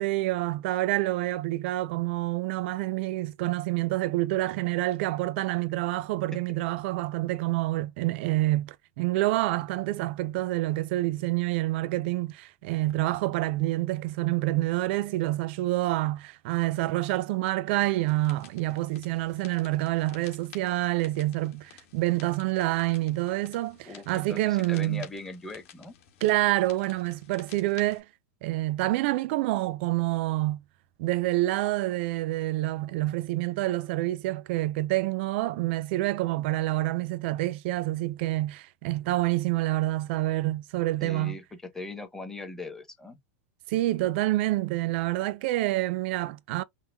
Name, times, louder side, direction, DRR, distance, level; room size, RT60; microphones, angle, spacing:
voice 1, 0.0-25.1 26.2-28.0 28.4-30.6 31.0-41.4 43.7-46.6, right 17 dB, 55° right, 0.4 m, -27 dB
sound 1, 18.0-28.0, left 9 dB, 55° left, 1.8 m, -53 dB
voice 2, 23.9-25.9 41.0-43.2, left 2 dB, 5° left, 0.9 m, -40 dB
5.6 x 2.2 x 2.2 m
supercardioid pair, 150°, 7 cm